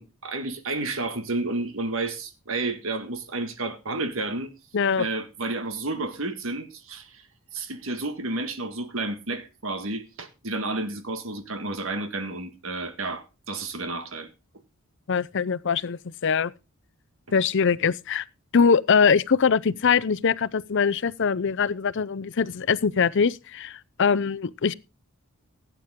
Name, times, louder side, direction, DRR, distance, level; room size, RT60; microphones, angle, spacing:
voice 1, 0.0-4.5 5.0-7.2 7.5-14.3, right 2 dB, 65° right, 1.8 m, -31 dB
voice 2, 4.7-5.1 15.1-16.5 17.3-18.2 18.5-24.7, left 6 dB, 60° left, 0.6 m, -22 dB
16.5 x 9.1 x 3.6 m
head